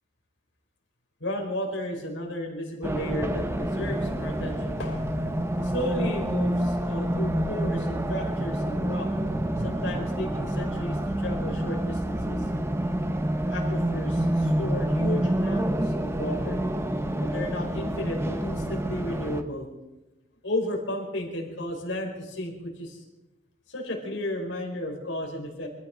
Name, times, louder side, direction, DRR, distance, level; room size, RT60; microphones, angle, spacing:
voice 1, 1.2-5.1 5.6-9.1 9.6-12.4 13.5-16.6 17.2-19.7 20.4-23.0 23.7-25.7, left 1 dB, 80° left, 0 dB, 4.7 m, -33 dB
Race car auto racing, 2.8-19.4, right 1 dB, 15° right, 0.9 m, -28 dB
25.5 x 14.5 x 3.8 m, 1.0 s
head